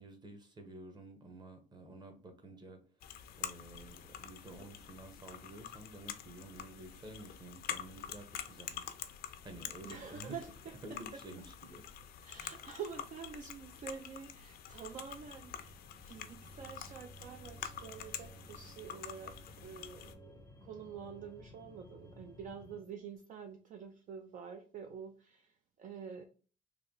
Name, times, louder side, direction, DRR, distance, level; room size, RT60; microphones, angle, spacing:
voice 1, 0.0-2.8 3.4-9.1 9.4-10.3 10.8-11.8 12.3-12.6, right 2 dB, 25° right, 0.9 m, -51 dB
sound 1, 3.0-20.1, left 9 dB, 65° left, 0.5 m, -47 dB
voice 2, 9.8-10.7 11.1-11.2 12.2-26.2, right 7 dB, 50° right, 0.4 m, -48 dB
sound 2, 14.7-22.8, right 1 dB, 20° left, 0.6 m, -56 dB
3.3 x 2.3 x 3.7 m
cardioid pair, 110°, 17 cm